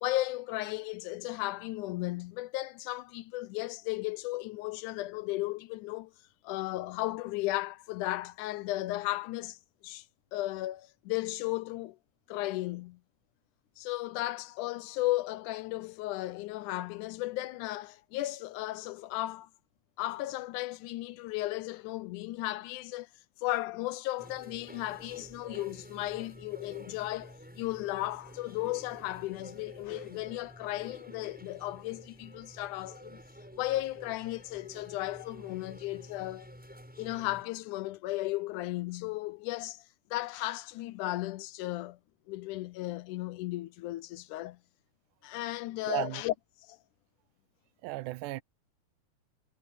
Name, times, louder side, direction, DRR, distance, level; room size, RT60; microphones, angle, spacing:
voice 1, 0.0-6.1 6.4-9.6 9.8-10.1 10.3-12.0 12.3-13.0 13.8-19.5 20.0-23.1 23.4-33.2 33.6-36.5 37.0-39.8 40.1-42.0 42.3-44.6 45.2-46.3 46.7-46.8, left 17 dB, 80° left, 2.1 m, -35 dB
sound 1, 24.2-37.4, equal, 5° right, 7.5 m, -50 dB
voice 2, 45.9-46.2 47.8-48.4, right 19 dB, 85° right, 2.1 m, -34 dB
omnidirectional pair, 3.6 m